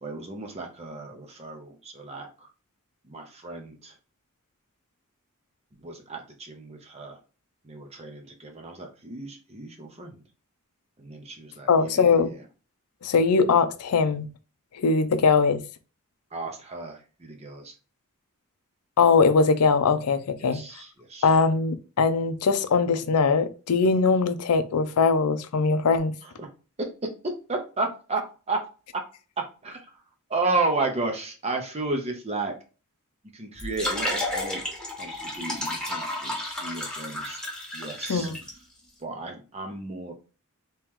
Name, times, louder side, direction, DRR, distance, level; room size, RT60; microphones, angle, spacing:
voice 1, 0.0-2.5 3.0-3.9 5.7-7.2 7.6-10.2 11.0-12.4 16.3-17.7 20.4-21.4 26.2-26.5 27.5-28.2 28.5-28.6 28.9-29.0 29.6-30.0 30.3-32.5 33.3-34.6 35.0-37.4 37.7-38.3 39.0-40.1, right 3 dB, 30° right, 0.7 m, -33 dB
voice 2, 11.7-12.3 13.0-14.3 14.7-15.6 19.0-20.6 21.2-26.1 38.1-38.4, left 4 dB, 85° left, 0.5 m, -21 dB
sound 1, 33.5-38.5, left 1 dB, 5° left, 1.1 m, -32 dB
3.0 x 2.9 x 3.5 m
head